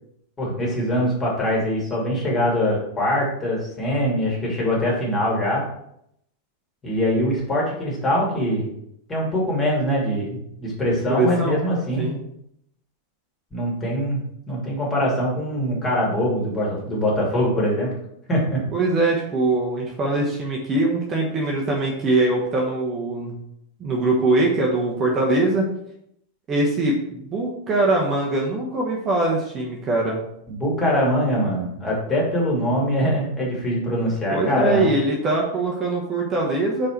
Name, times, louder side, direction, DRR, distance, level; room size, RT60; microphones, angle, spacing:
voice 1, 0.4-5.6 6.8-8.7 9.1-12.1 13.5-17.9 18.3-18.6 30.5-34.9, equal, 20° left, -4 dB, 2.5 m, -23 dB
voice 2, 11.1-11.6 12.0-12.2 18.7-23.4 23.8-25.6 26.5-30.2 34.3-36.9, right 2 dB, 25° right, -2 dB, 1.1 m, -22 dB
4.9 x 4.6 x 4.5 m, 0.75 s
figure-of-eight pair, 90°, 0 cm